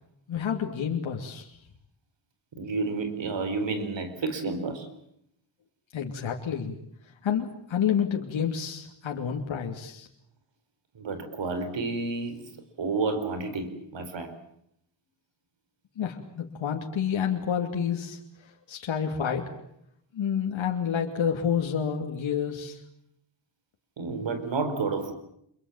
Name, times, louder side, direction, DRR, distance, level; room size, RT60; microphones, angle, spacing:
voice 1, 0.3-1.5 5.9-6.8 7.2-10.1 16.0-18.2 18.7-19.5 20.1-22.8, left 8 dB, 75° left, 2 dB, 2.9 m, -29 dB
voice 2, 2.6-4.9 10.9-12.5 12.8-14.3 24.0-25.1, right 3 dB, 70° right, 9 dB, 4.8 m, -30 dB
26.5 x 23.0 x 7.3 m, 0.73 s
cardioid pair, 65°, 46 cm